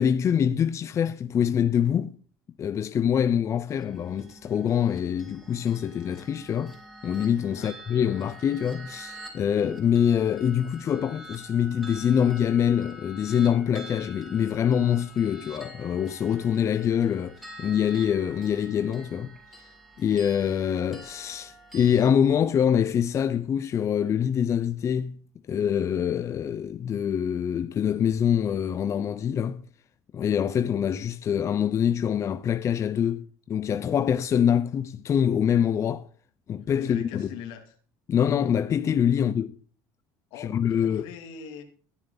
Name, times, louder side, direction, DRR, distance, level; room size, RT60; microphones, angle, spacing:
voice 1, 0.0-2.2 2.6-6.7 7.0-19.3 19.6-19.7 20.0-25.2 25.5-29.6 30.1-36.0 36.5-37.3 38.1-39.6 40.4-41.1, left 8 dB, 40° left, 0.7 m, -25 dB
sound 1, 3.7-22.1, right 1 dB, ahead, 4.3 m, -47 dB
voice 2, 36.8-37.7 40.3-41.6, left 7 dB, 75° left, 2.8 m, -41 dB
21.5 x 7.2 x 4.1 m
supercardioid pair, 110°, 8 cm